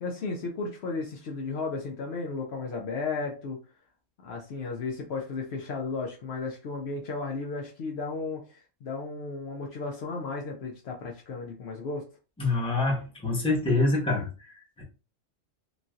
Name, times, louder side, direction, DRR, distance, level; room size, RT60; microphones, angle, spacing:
voice 1, 0.0-3.6 4.2-12.1, left 4 dB, 65° left, 0.8 m, -34 dB
voice 2, 12.4-14.8, left 2 dB, 5° left, 0.8 m, -26 dB
2.9 x 2.6 x 2.4 m
omnidirectional pair, 1.3 m